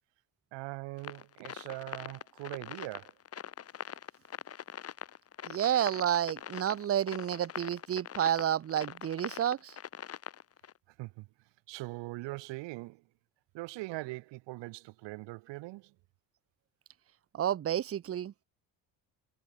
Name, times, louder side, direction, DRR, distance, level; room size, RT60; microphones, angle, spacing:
voice 1, 0.5-3.1 11.0-11.3 11.7-13.0 13.5-15.9, right 21 dB, 75° right, 0.7 m, -41 dB
sound 1, 1.0-10.7, left 9 dB, 35° left, 0.7 m, -43 dB
voice 2, 5.5-9.8 17.3-18.3, right 10 dB, 35° right, 0.6 m, -30 dB
supercardioid pair, 75°, 44 cm